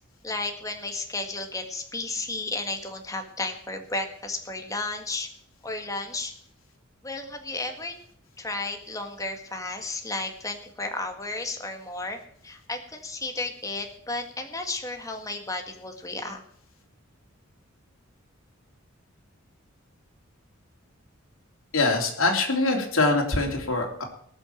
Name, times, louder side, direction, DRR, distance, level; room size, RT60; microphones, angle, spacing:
voice 1, 0.2-5.3 5.6-6.3 7.0-7.9 8.4-16.4, left 2 dB, 15° left, 5 dB, 1.7 m, -33 dB
voice 2, 21.7-24.0, left 3 dB, 85° left, 1 dB, 3.2 m, -23 dB
18.5 x 6.4 x 7.2 m, 0.63 s
head